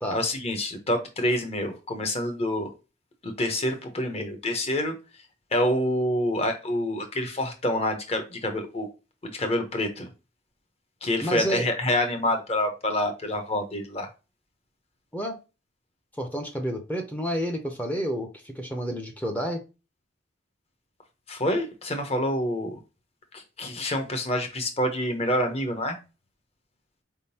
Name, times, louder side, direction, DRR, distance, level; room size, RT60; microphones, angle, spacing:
voice 1, 0.1-2.7 3.2-5.0 5.5-8.9 9.2-10.1 11.0-14.1 21.3-22.8 23.3-26.0, left 1 dB, 30° left, 0.9 m, -27 dB
voice 2, 11.2-11.7 15.1-15.4 16.2-19.6, equal, 10° left, 0.6 m, -30 dB
4.5 x 3.6 x 2.8 m
head